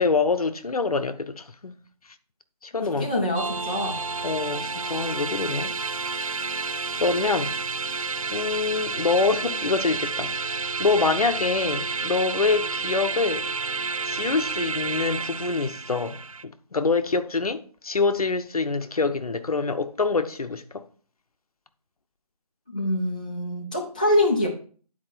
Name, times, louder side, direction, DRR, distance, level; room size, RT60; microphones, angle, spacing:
voice 1, 0.0-1.8 2.6-3.1 4.2-5.8 6.1-6.4 7.0-7.5 8.3-13.5 14.1-20.8, left 4 dB, 65° left, 0.8 m, -25 dB
voice 2, 2.8-4.0 22.7-24.5, left 1 dB, 15° left, 0.5 m, -25 dB
sound 1, 3.3-16.4, right 4 dB, 55° right, 0.5 m, -30 dB
10.0 x 4.4 x 4.4 m
figure-of-eight pair, 165°, 21 cm